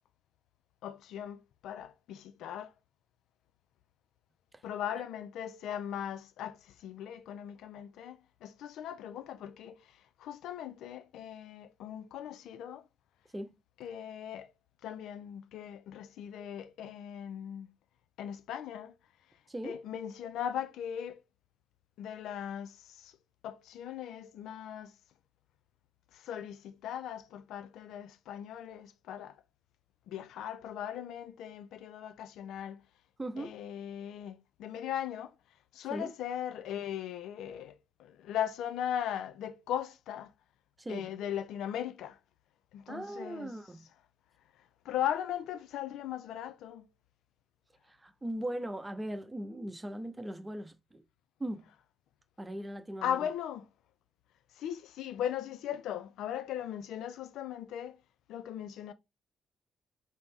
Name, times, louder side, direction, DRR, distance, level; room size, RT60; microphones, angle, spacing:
voice 1, 0.8-2.7 4.6-12.9 13.8-14.5 14.8-17.7 18.2-18.9 19.6-21.2 22.0-23.1 23.4-24.9 26.1-29.4 30.1-32.8 33.4-35.3 35.7-40.3 40.9-42.2 42.7-43.5 44.8-46.9 53.0-53.7 54.5-58.0 58.3-58.9, left 10 dB, 70° left, 0.3 m, -38 dB
voice 2, 19.5-19.8 33.2-33.6 35.9-36.1 40.8-41.1 42.9-43.9 47.8-51.0 51.4-51.7 52.4-53.3, right 1 dB, 20° right, 0.7 m, -39 dB
4.0 x 2.0 x 3.3 m
hypercardioid pair, 45°, 0 cm